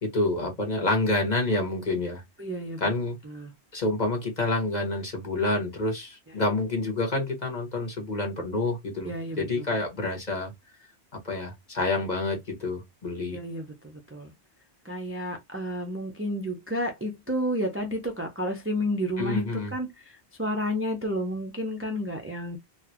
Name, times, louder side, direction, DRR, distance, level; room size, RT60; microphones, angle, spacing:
voice 1, 0.0-2.2 2.8-3.2 3.7-10.5 11.2-13.4 19.2-19.7, left 2 dB, 40° left, 1.4 m, -28 dB
voice 2, 2.4-2.8 3.3-3.5 9.1-9.5 13.3-14.3 14.8-19.9 20.4-22.6, equal, 15° right, 0.5 m, -31 dB
3.9 x 2.1 x 2.8 m
omnidirectional pair, 1.1 m